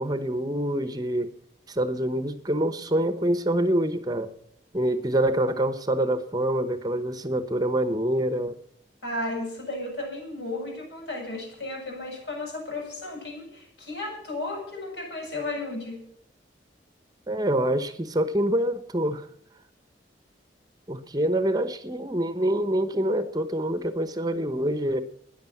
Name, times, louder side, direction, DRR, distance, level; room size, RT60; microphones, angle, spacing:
voice 1, 0.0-1.3 1.7-4.3 4.7-8.6 17.3-19.3 20.9-25.0, right 1 dB, 20° right, 12 dB, 0.9 m, -26 dB
voice 2, 9.0-16.0, left 2 dB, 70° left, 0 dB, 7.9 m, -34 dB
13.5 x 10.5 x 7.3 m, 0.71 s
head